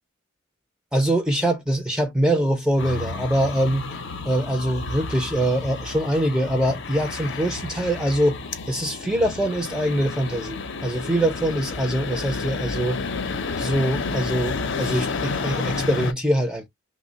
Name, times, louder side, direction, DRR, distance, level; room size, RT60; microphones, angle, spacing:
voice 1, 0.9-3.9 4.3-8.4 8.7-13.0 13.6-16.7, right 1 dB, 5° right, 0.4 m, -23 dB
sound 1, 2.8-16.1, left 4 dB, 60° left, 0.6 m, -31 dB
3.1 x 2.1 x 3.8 m
head